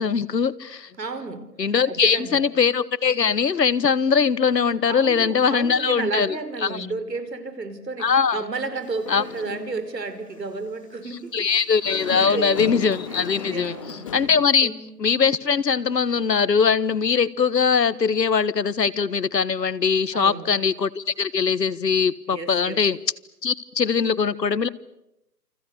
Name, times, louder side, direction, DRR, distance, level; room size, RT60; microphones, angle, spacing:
voice 1, 0.0-0.9 1.6-6.4 6.6-6.9 8.0-8.4 9.1-9.2 11.3-14.7 15.0-23.0 23.4-24.7, left 6 dB, 80° left, 20 dB, 1.5 m, -21 dB
voice 2, 1.0-1.5 1.8-2.4 4.9-11.5 12.1-12.7 13.1-14.1 14.6-14.8 20.1-20.5 22.3-22.8, right 3 dB, 80° right, 10 dB, 5.0 m, -32 dB
Dog, 8.8-9.9 10.3-10.5 11.7-14.4, left 6 dB, 20° left, 2.6 m, -35 dB
28.5 x 28.0 x 7.0 m, 0.84 s
hypercardioid pair, 170°, 49 cm